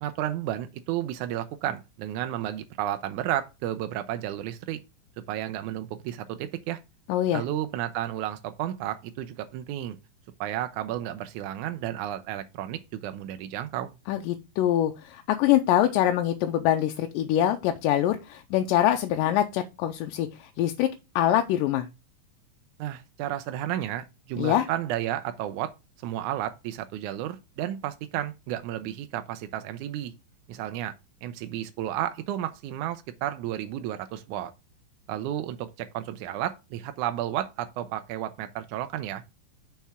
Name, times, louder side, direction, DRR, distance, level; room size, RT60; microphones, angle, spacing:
voice 1, 0.0-4.8 5.3-6.8 7.3-10.0 10.4-13.9 22.8-25.7 26.0-30.1 30.5-30.9 31.2-34.5 35.1-39.2, right 12 dB, 80° right, 1.9 m, -32 dB
voice 2, 7.1-7.4 14.1-20.9 21.2-21.9 24.4-24.7, left 12 dB, 85° left, 2.3 m, -24 dB
7.2 x 5.8 x 3.5 m
omnidirectional pair, 3.8 m